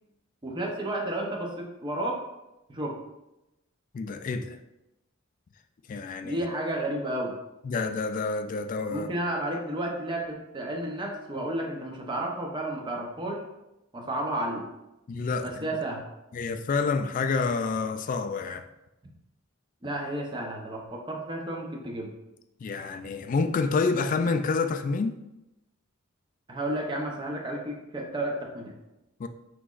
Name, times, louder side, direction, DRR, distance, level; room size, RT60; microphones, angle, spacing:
voice 1, 0.4-2.2 2.7-3.0 6.2-7.3 8.9-13.4 13.9-14.7 15.4-16.0 19.8-22.1 26.5-28.7, right 1 dB, 25° right, 0 dB, 0.7 m, -32 dB
voice 2, 3.9-4.6 5.9-6.4 7.6-9.1 15.1-15.7 16.3-18.6 22.6-25.2 29.2-29.3, left 4 dB, 40° left, 8 dB, 0.3 m, -28 dB
5.9 x 3.0 x 2.4 m, 0.92 s
head